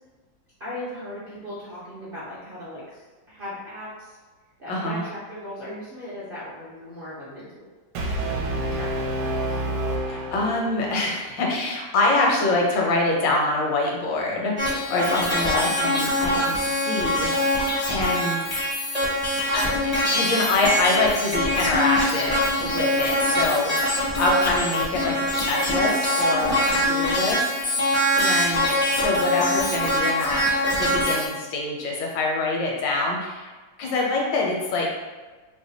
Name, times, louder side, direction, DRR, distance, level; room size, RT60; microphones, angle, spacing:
voice 1, 0.6-4.2 4.6-7.7 8.2-9.6 15.3-15.4 16.2-16.4 18.3-18.5 23.5-23.6 27.0-27.2, left 1 dB, 50° right, -10 dB, 0.7 m, -38 dB
voice 2, 4.7-5.0 10.1-16.6 16.9-18.4 19.5-23.7 24.2-27.4 27.7-30.4 30.7-33.5 33.8-34.9, left 2 dB, 80° left, -1 dB, 1.5 m, -25 dB
Brass instrument, 7.9-11.0, right 1 dB, 75° right, 1.2 m, -28 dB
sound 1, 14.6-31.3, left 1 dB, 35° left, 0.6 m, -23 dB
3.3 x 2.2 x 3.9 m, 1.3 s
omnidirectional pair, 2.0 m